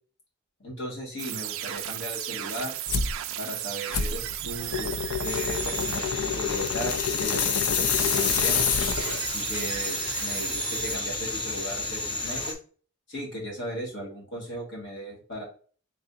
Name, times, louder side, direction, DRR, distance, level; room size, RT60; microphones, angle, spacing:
voice 1, 0.6-2.8 3.4-8.7 9.3-12.6 13.1-15.4, equal, 55° left, -2 dB, 1.9 m, -37 dB
sound 1, 1.2-7.3 8.0-12.1, right 13 dB, 60° right, 0.3 m, -36 dB
sound 2, 2.9-3.2 3.9-9.3, left 6 dB, 80° left, 0.4 m, -27 dB
sound 3, 5.2-12.5, left 2 dB, 20° left, 0.5 m, -32 dB
4.0 x 3.6 x 2.6 m, 0.40 s
head